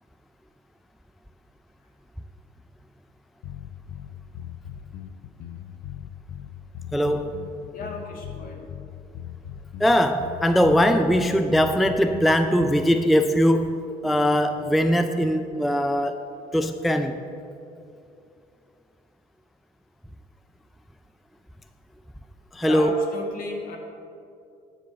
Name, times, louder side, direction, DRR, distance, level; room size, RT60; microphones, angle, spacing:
sound 1, 3.4-13.0, left 10 dB, 80° left, 0.5 m, -39 dB
voice 1, 6.9-7.4 9.8-16.2 16.5-17.2 22.5-23.0, equal, ahead, 8 dB, 0.3 m, -21 dB
voice 2, 7.7-8.7 22.6-23.8, left 2 dB, 55° left, 1 dB, 1.8 m, -35 dB
10.0 x 4.8 x 7.5 m, 2.6 s
cardioid pair, 110°, 17 cm